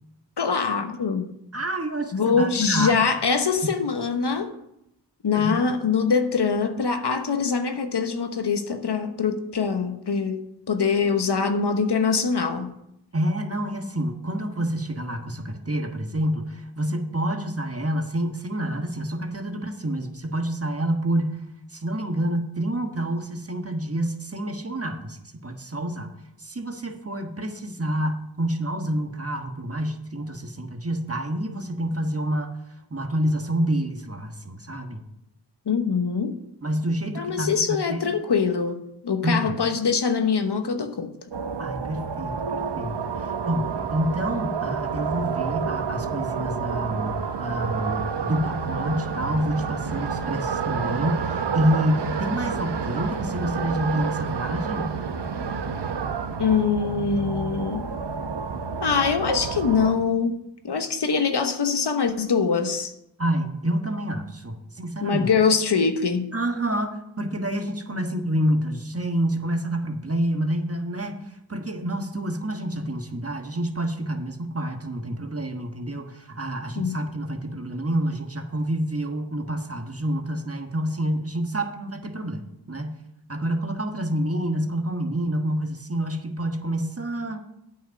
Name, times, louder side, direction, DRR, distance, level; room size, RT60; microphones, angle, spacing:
voice 1, 0.4-1.3 2.1-4.5 5.2-10.4 10.7-12.7 35.7-36.4 37.1-41.1 56.4-57.9 58.8-60.3 60.6-62.9 65.0-66.3 76.7-77.0, left 5 dB, 65° left, 7 dB, 1.0 m, -23 dB
voice 2, 1.5-3.0 5.3-5.7 13.1-21.4 21.7-26.1 26.4-32.6 32.9-35.0 36.6-38.1 39.2-39.6 41.6-54.9 63.2-65.3 66.3-82.4 82.7-83.0 83.3-87.4, right 1 dB, 30° right, 5 dB, 1.3 m, -28 dB
sound 1, 41.3-60.0, right 6 dB, 70° right, 0.9 m, -29 dB
9.0 x 5.5 x 6.9 m, 0.80 s
wide cardioid pair, 55°, 44 cm